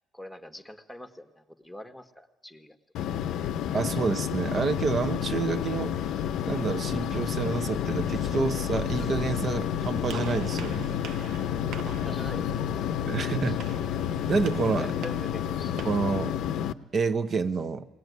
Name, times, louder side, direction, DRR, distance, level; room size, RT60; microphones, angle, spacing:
voice 1, 0.1-2.8 11.8-12.8 13.4-13.6 14.8-15.8, left 1 dB, ahead, 6 dB, 1.4 m, -44 dB
sound 1, 2.9-16.7, left 9 dB, 70° left, 0.7 m, -30 dB
voice 2, 3.7-5.9 6.5-10.8 13.1-13.6 14.3-14.9 15.8-16.3 16.9-17.8, right 4 dB, 40° right, 11 dB, 1.1 m, -28 dB
sound 2, 4.7-14.6, left 4 dB, 20° left, 0.8 m, -45 dB
Gunshot gunfire, 10.1-16.1, right 7 dB, 65° right, 0.9 m, -45 dB
21.5 x 18.5 x 9.4 m, 1.1 s
cardioid pair, 115°, 0 cm